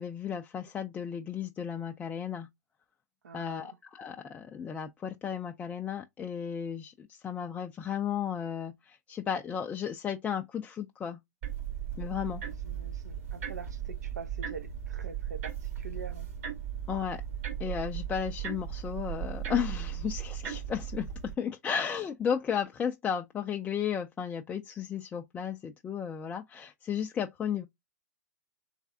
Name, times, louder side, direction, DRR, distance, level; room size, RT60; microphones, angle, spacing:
voice 1, 0.0-2.5 3.3-11.2 12.0-12.4 16.9-17.2 17.6-27.7, left 8 dB, 15° left, 0.3 m, -34 dB
voice 2, 3.2-3.8 12.4-16.3, right 5 dB, 75° right, 0.8 m, -45 dB
sound 1, 11.4-21.3, right 9 dB, 55° right, 1.8 m, -37 dB
3.3 x 3.2 x 2.5 m
hypercardioid pair, 115°, 9 cm